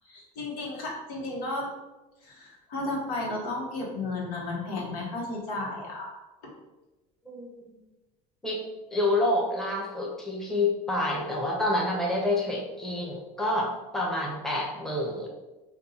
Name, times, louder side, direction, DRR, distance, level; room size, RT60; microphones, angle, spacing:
voice 1, 0.0-1.7 2.2-6.1 6.4-6.5, left 2 dB, 85° left, -2 dB, 1.0 m, -33 dB
voice 2, 8.9-15.3, left 2 dB, ahead, -3 dB, 0.8 m, -28 dB
2.6 x 2.3 x 4.0 m, 1.1 s
supercardioid pair, 100°, 19 cm